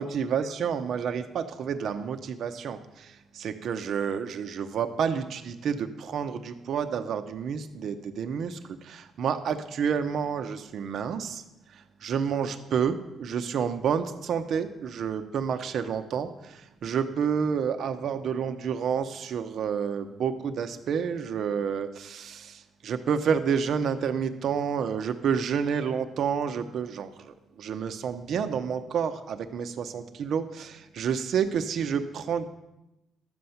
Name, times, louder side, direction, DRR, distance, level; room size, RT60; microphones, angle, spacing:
voice 1, 0.0-11.4 11.7-32.5, right 7 dB, 65° right, 8 dB, 0.8 m, -29 dB
12.5 x 8.0 x 5.7 m, 0.95 s
cardioid pair, 90°, 0 cm